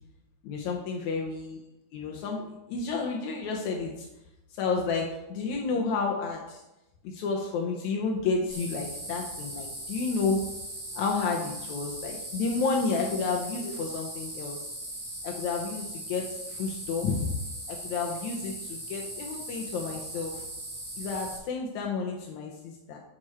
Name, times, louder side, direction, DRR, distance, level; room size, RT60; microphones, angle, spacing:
voice 1, 0.4-1.6 1.9-4.1 4.5-6.6 7.0-10.4 11.0-14.6 15.2-17.3 17.7-20.4 21.0-23.0, left 4 dB, 80° left, 0 dB, 2.2 m, -31 dB
sound 1, 8.5-21.4, right 1 dB, 5° right, 1.8 m, -39 dB
11.5 x 5.0 x 4.3 m, 0.95 s
omnidirectional pair, 3.3 m